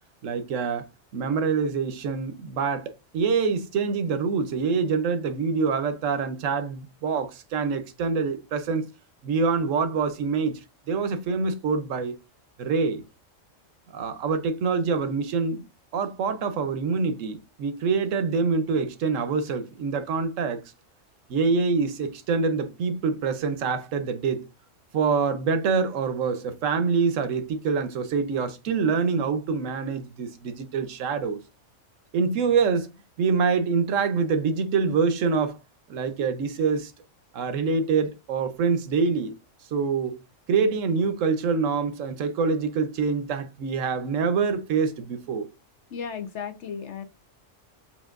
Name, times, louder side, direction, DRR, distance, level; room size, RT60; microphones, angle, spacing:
voice 1, 0.2-0.9 1.1-8.8 9.2-10.6 10.9-12.2 12.6-13.0 13.9-15.6 15.9-20.6 21.3-24.4 24.9-31.4 32.1-32.9 33.2-35.6 35.9-36.9 37.3-39.3 39.7-40.2 40.5-45.5, right 5 dB, 85° right, 1.1 m, -25 dB
voice 2, 45.9-47.0, left 7 dB, 65° left, 1.2 m, -34 dB
7.1 x 2.9 x 2.5 m
omnidirectional pair, 1.3 m